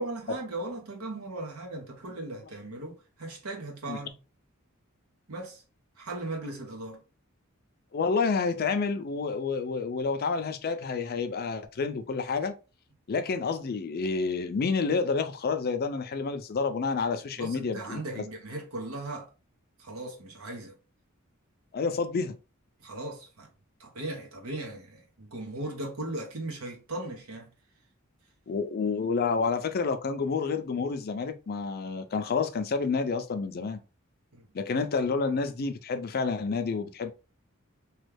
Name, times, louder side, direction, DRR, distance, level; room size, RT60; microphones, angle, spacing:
voice 1, 0.0-4.1 5.3-5.6 6.0-7.0 17.4-19.3 19.8-20.8 22.8-23.5 23.8-27.5 34.3-34.5, right 2 dB, 85° right, 1.0 m, -38 dB
voice 2, 7.9-12.5 13.1-18.2 21.7-22.3 28.5-33.8 34.5-37.1, left 4 dB, 45° left, 0.4 m, -29 dB
3.0 x 2.3 x 3.3 m
head